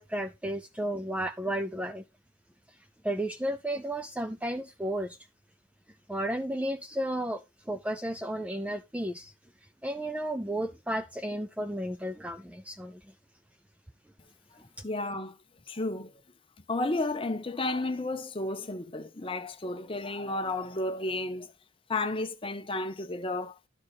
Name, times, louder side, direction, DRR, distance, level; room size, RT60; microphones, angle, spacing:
voice 1, 0.0-2.0 3.0-5.2 6.1-9.3 9.8-13.0, right 1 dB, 5° right, 0.4 m, -33 dB
voice 2, 14.8-15.4 15.7-16.1 16.7-21.5 21.9-23.7, left 2 dB, 25° left, 0.8 m, -32 dB
12.0 x 4.7 x 4.1 m
head